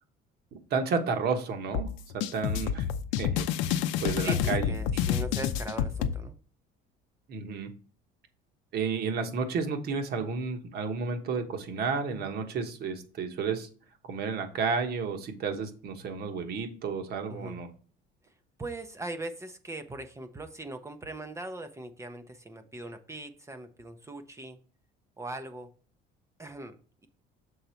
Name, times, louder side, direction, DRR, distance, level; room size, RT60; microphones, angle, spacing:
voice 1, 0.7-1.9 2.1-2.9 3.2-4.7 7.3-7.7 8.7-13.7 14.0-17.7, right 5 dB, 55° right, 6 dB, 1.2 m, -32 dB
sound 1, 1.7-6.1, left 9 dB, 80° left, 0.6 m, -28 dB
voice 2, 4.2-6.3 17.3-17.6 18.6-24.6 25.2-25.7 26.4-27.1, right 2 dB, 15° right, 7 dB, 0.6 m, -40 dB
6.8 x 3.9 x 4.4 m, 0.40 s
cardioid pair, 120°, 19 cm